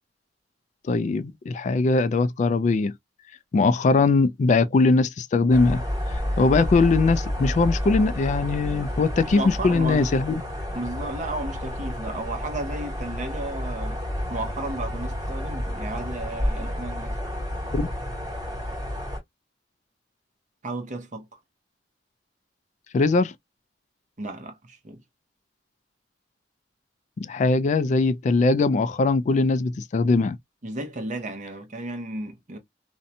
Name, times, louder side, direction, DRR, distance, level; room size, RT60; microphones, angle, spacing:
voice 1, 0.9-2.9 3.5-5.8 6.4-10.3 17.7-17.9 22.9-23.3 27.2-30.4, left 3 dB, 40° left, 0.3 m, -21 dB
sound 1, 5.5-19.2, equal, 20° right, 1.2 m, -30 dB
voice 2, 9.2-10.0 10.7-14.0 14.3-17.2 20.6-21.4 24.2-25.0 30.6-32.6, right 2 dB, 45° right, 0.7 m, -33 dB
2.6 x 2.1 x 2.6 m
head